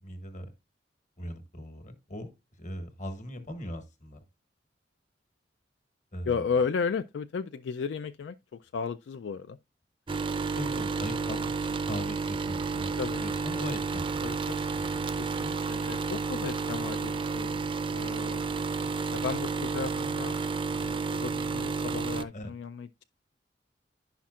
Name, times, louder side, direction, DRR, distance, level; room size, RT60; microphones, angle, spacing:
voice 1, 0.0-0.5 1.2-2.3 2.6-4.2 6.1-6.3 10.6-12.9 13.2-14.3 14.7-15.2 22.3-22.5, equal, 45° left, 1.4 m, -39 dB
voice 2, 6.2-9.6 13.0-13.2 14.2-14.7 15.0-17.6 17.9-18.4 19.1-20.4 20.7-23.0, left 5 dB, 75° left, 0.3 m, -34 dB
sound 1, 10.1-22.2, right 4 dB, 30° right, 0.5 m, -31 dB
10.5 x 5.7 x 2.4 m
head